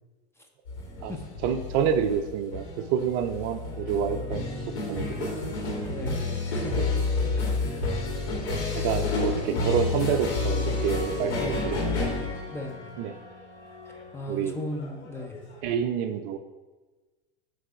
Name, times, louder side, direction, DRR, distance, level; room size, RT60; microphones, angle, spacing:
sound 1, 0.7-15.7, left 3 dB, 80° left, 2.1 m, -30 dB
voice 1, 1.4-4.4 4.9-5.3 6.8-7.0 8.5-12.2 13.0-13.1 14.3-14.6 15.6-16.4, right 8 dB, 45° right, 8 dB, 0.5 m, -28 dB
voice 2, 5.0-5.4 5.9-6.8 7.6-7.8 11.3-11.7 12.5-12.9 13.9-15.4, left 2 dB, 10° left, 3 dB, 0.6 m, -37 dB
7.6 x 3.3 x 4.9 m, 1.2 s
hypercardioid pair, 115°, 33 cm